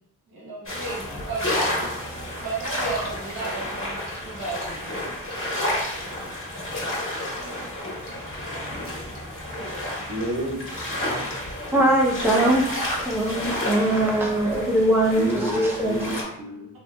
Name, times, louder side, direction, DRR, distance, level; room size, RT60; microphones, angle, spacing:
voice 1, 0.3-1.7 2.4-5.0 5.9-6.3, right 3 dB, 90° right, -4 dB, 1.1 m, -34 dB
sound 1, 0.7-16.2, left 1 dB, 40° left, 1.1 m, -30 dB
voice 2, 10.1-11.0 15.1-16.7, equal, 55° right, -3 dB, 1.0 m, -31 dB
voice 3, 11.7-12.7 13.0-16.1, right 1 dB, 5° right, -2 dB, 0.6 m, -22 dB
3.2 x 2.8 x 2.3 m, 0.74 s
wide cardioid pair, 85°, 35 cm